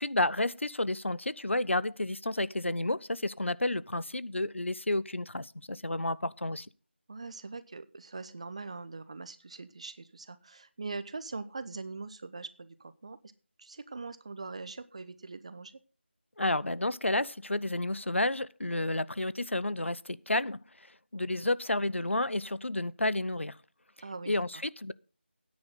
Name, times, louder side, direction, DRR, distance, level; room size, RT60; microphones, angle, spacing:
voice 1, 0.0-6.7 16.4-20.6 21.1-23.6 24.3-24.9, left 2 dB, 85° left, 0.8 m, -31 dB
voice 2, 7.1-13.2 13.6-15.7 24.0-24.4, right 3 dB, 30° right, 0.9 m, -42 dB
14.5 x 9.7 x 3.8 m
figure-of-eight pair, 170°, 6 cm